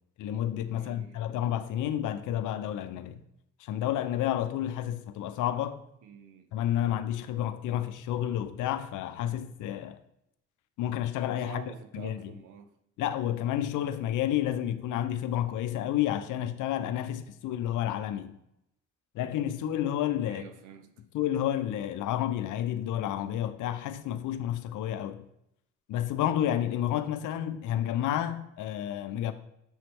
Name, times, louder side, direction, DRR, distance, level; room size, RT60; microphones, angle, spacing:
voice 1, 0.2-3.2 3.6-5.8 6.5-10.0 10.8-11.6 11.9-12.3 13.0-18.4 19.1-20.4 21.1-25.3 25.9-29.3, left 11 dB, 80° left, 0.6 m, -30 dB
voice 2, 0.7-1.4 6.0-6.5 11.4-12.7 20.3-20.9, right 8 dB, 85° right, 0.7 m, -48 dB
7.1 x 3.2 x 4.3 m
cardioid pair, 90°, 30 cm